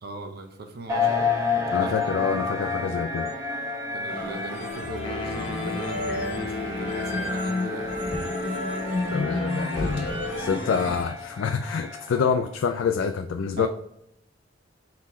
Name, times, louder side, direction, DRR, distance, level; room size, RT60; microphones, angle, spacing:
voice 1, 0.0-2.2 3.9-8.0 10.6-11.0 13.6-13.7, right 2 dB, 55° right, 5 dB, 0.7 m, -39 dB
sound 1, 0.9-12.3, left 4 dB, 15° right, 0.9 m, -31 dB
voice 2, 1.7-3.3 9.1-13.7, left 6 dB, 85° left, 7 dB, 0.3 m, -27 dB
sound 2, 4.1-11.0, left 2 dB, 70° left, 1.6 m, -30 dB
sound 3, 5.0-8.4, left 3 dB, 25° left, 0.5 m, -37 dB
4.1 x 4.0 x 3.1 m, 0.78 s
head